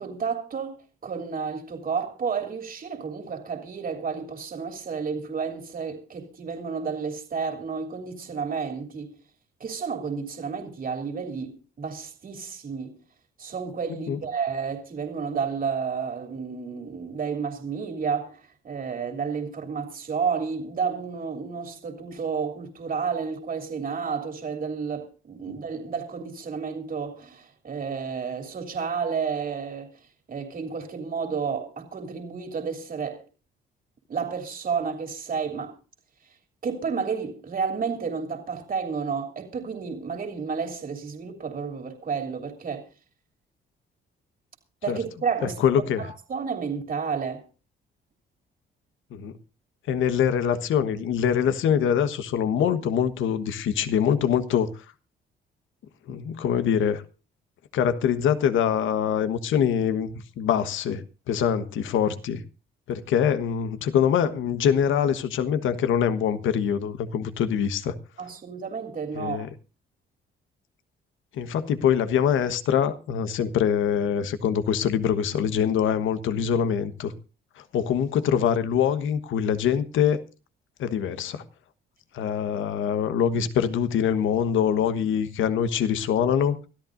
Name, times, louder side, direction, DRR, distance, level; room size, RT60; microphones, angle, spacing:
voice 1, 0.0-9.1 9.6-13.0 13.4-18.4 18.6-29.9 30.3-33.2 34.1-35.7 36.6-42.9 44.8-45.6 46.0-47.4 68.2-69.5, right 6 dB, 45° right, 3.0 m, -31 dB
voice 2, 45.4-46.1 49.1-49.4 49.9-54.8 56.1-57.0 57.7-62.4 62.9-67.9 69.1-69.5 71.3-77.1 77.6-80.2 80.8-81.4 82.1-86.7, left 8 dB, 80° left, 1.4 m, -24 dB
24.5 x 13.5 x 2.6 m
cardioid pair, 90°, 20 cm